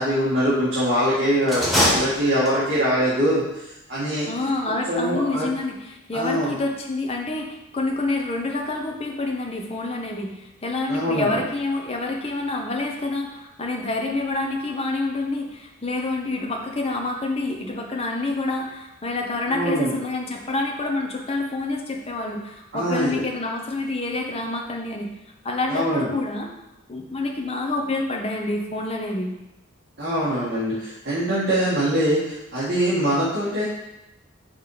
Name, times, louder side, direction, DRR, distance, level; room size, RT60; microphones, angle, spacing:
voice 1, 0.0-3.4 3.9-4.3 4.9-5.5 6.1-6.5 10.9-11.4 19.5-19.9 22.7-23.2 25.7-26.1 30.0-33.6, equal, 50° right, -11 dB, 2.1 m, -23 dB
sound 1, 1.4-2.8, equal, ahead, 1.3 m, -23 dB
voice 2, 4.3-25.1 25.4-26.5 26.9-29.3, left 2 dB, 30° left, 1 dB, 0.9 m, -27 dB
6.0 x 4.3 x 5.0 m, 0.90 s
head